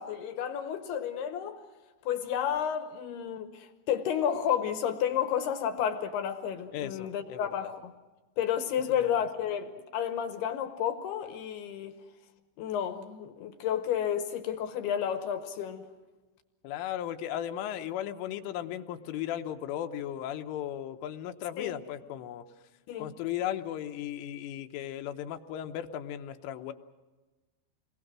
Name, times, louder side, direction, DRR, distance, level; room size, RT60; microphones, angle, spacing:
voice 1, 0.0-1.6 2.1-7.9 8.4-12.0 12.6-15.8 21.6-21.7 22.9-23.1, left 9 dB, 70° left, 2.7 m, -31 dB
voice 2, 6.7-7.7 16.6-22.4 23.0-26.7, left 11 dB, 85° left, 3.5 m, -36 dB
28.5 x 22.0 x 6.1 m
omnidirectional pair, 5.5 m